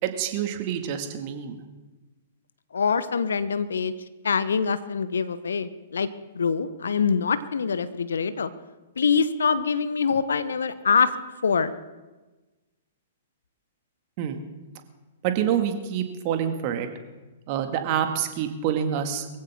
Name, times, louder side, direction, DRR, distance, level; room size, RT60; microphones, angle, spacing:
voice 1, 0.0-1.6 14.2-14.4 15.2-16.9 17.5-19.3, right 9 dB, 40° right, 6 dB, 1.9 m, -27 dB
voice 2, 2.7-3.9 4.2-6.1 6.3-8.5 9.0-11.1 11.4-11.7, left 5 dB, 70° left, 14 dB, 0.9 m, -24 dB
23.0 x 15.5 x 3.6 m, 1.2 s
figure-of-eight pair, 110°, 0 cm